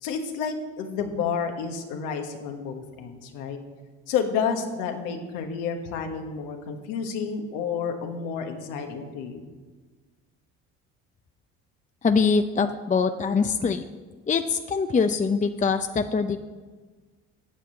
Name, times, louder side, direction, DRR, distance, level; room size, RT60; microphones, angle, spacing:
voice 1, 0.0-3.6 4.1-9.4, left 6 dB, 85° left, 4 dB, 1.4 m, -30 dB
voice 2, 12.0-13.8 14.3-16.4, left 5 dB, 25° left, 8 dB, 0.6 m, -23 dB
9.2 x 6.9 x 7.7 m, 1.4 s
supercardioid pair, 70°, 32 cm